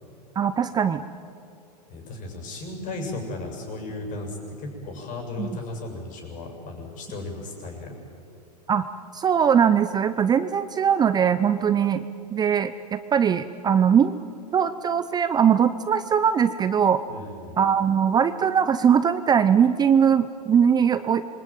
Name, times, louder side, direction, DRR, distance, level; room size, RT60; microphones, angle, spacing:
voice 1, 0.4-1.0 5.4-5.5 8.7-8.8 9.1-12.0 12.3-14.2 14.5-17.0 17.6-21.2, right 8 dB, 20° right, 12 dB, 0.7 m, -21 dB
voice 2, 1.9-7.9 17.1-17.6, left 2 dB, 40° left, 3 dB, 7.5 m, -35 dB
27.0 x 23.0 x 9.1 m, 2.6 s
hypercardioid pair, 125°, 21 cm